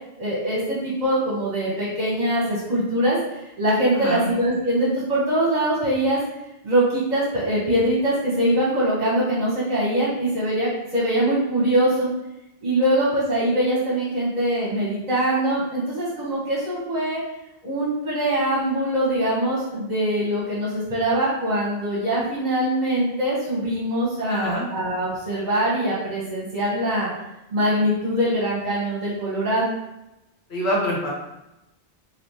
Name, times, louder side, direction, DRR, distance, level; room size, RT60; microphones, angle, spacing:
voice 1, 0.2-6.2 6.6-12.1 12.6-17.2 17.6-27.1 27.5-29.7, right 1 dB, 45° right, -7 dB, 0.9 m, -23 dB
voice 2, 3.9-4.3 24.3-24.7 30.5-31.1, equal, 80° left, -5 dB, 1.4 m, -25 dB
3.3 x 2.7 x 2.7 m, 0.92 s
omnidirectional pair, 1.1 m